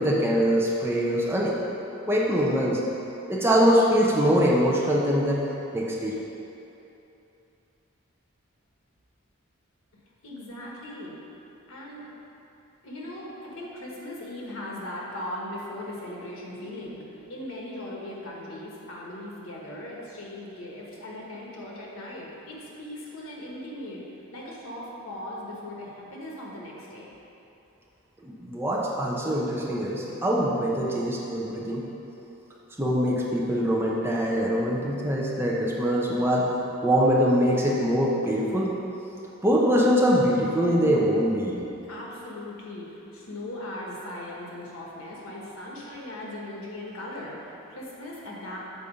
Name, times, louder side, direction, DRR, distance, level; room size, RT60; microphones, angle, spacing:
voice 1, 0.0-1.5 2.1-2.8 3.3-5.4 5.7-6.1 28.2-31.8 32.8-38.7 39.4-41.5, equal, 10° right, -4 dB, 0.6 m, -23 dB
voice 2, 10.2-11.1 11.7-12.0 12.8-24.0 24.3-27.1 41.8-48.6, left 1 dB, 90° left, -3 dB, 1.3 m, -38 dB
6.9 x 4.1 x 5.1 m, 3.0 s
head